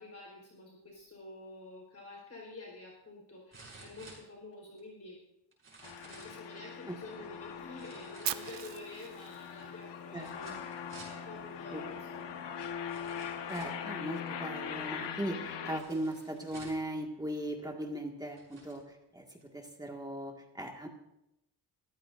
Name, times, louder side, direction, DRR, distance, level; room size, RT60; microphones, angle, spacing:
voice 1, 0.0-5.2 6.0-12.5, left 2 dB, 35° left, -2 dB, 4.3 m, -49 dB
sound 1, 2.1-2.2 3.5-4.8 5.5-6.5 7.8-8.9 10.2-11.2 12.2-12.3 12.9-13.9 15.8-16.9 17.7-17.8 18.2-18.8 19.4-19.5, right 3 dB, 30° right, 6.2 m, -54 dB
sound 2, 5.8-15.8, left 7 dB, 90° left, 1.4 m, -41 dB
Fire, 8.2-10.3, right 12 dB, 80° right, 0.8 m, -39 dB
voice 2, 10.1-10.6 11.7-11.8 13.5-20.9, right 1 dB, 10° right, 1 dB, 1.9 m, -39 dB
22.5 x 15.0 x 2.6 m, 0.84 s
cardioid pair, 115°, 41 cm